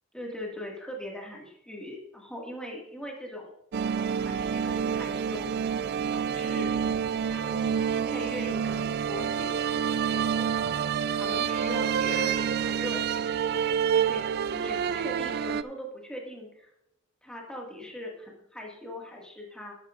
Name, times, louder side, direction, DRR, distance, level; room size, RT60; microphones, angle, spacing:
voice 1, 0.1-3.5 4.2-5.5 6.1-6.8 7.2-10.7 11.1-13.3 13.9-16.7 17.2-19.8, left 1 dB, 5° left, -2 dB, 1.8 m, -40 dB
sound 1, 3.7-15.6, right 7 dB, 50° right, 0.3 m, -28 dB
12.5 x 11.5 x 2.4 m, 0.80 s
head